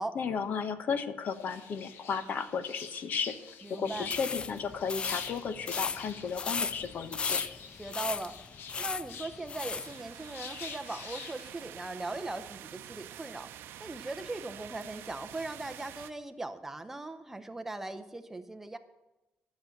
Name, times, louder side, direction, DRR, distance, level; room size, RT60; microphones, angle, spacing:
voice 1, 0.1-3.3 3.7-7.4, left 6 dB, 45° left, 11 dB, 1.0 m, -34 dB
sound 1, 1.2-11.5, left 6 dB, 70° left, 1.3 m, -46 dB
voice 2, 3.6-4.1 7.8-8.3 8.8-13.5 13.8-18.8, right 2 dB, 10° right, 8 dB, 0.8 m, -39 dB
sound 2, 4.0-9.9, left 5 dB, 25° left, 0.4 m, -36 dB
sound 3, 9.6-16.1, right 11 dB, 80° right, 0.7 m, -47 dB
12.0 x 7.2 x 9.0 m, 1.0 s
cardioid pair, 150°, 4 cm